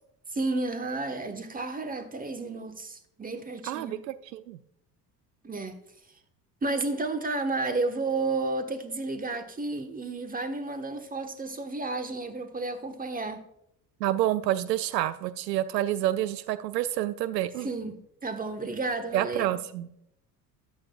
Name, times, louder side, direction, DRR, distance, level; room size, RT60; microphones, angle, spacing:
voice 1, 0.3-4.0 5.4-5.8 6.6-13.4 17.6-19.5, right 3 dB, 15° right, 1.4 m, -32 dB
voice 2, 3.7-4.6 14.0-17.7 19.1-19.9, right 13 dB, 80° right, 0.6 m, -28 dB
13.5 x 9.5 x 2.4 m
hypercardioid pair, 65°, 49 cm